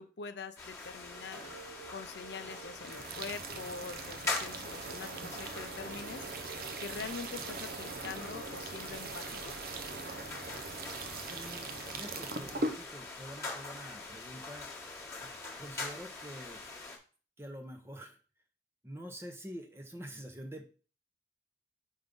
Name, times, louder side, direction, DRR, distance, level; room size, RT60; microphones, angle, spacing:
voice 1, 0.0-1.4 1.9-6.4 6.8-9.5, left 4 dB, 70° left, 10 dB, 0.5 m, -44 dB
sound 1, 0.6-17.0, left 3 dB, 15° left, 1.2 m, -43 dB
sound 2, 1.1-9.8, right 4 dB, 90° right, 1.9 m, -53 dB
sound 3, 2.8-12.8, right 3 dB, 55° right, 0.6 m, -41 dB
voice 2, 11.3-14.7 15.2-16.6 17.4-18.2 18.8-20.7, equal, 15° right, 5 dB, 0.8 m, -47 dB
5.4 x 3.5 x 5.2 m, 0.37 s
head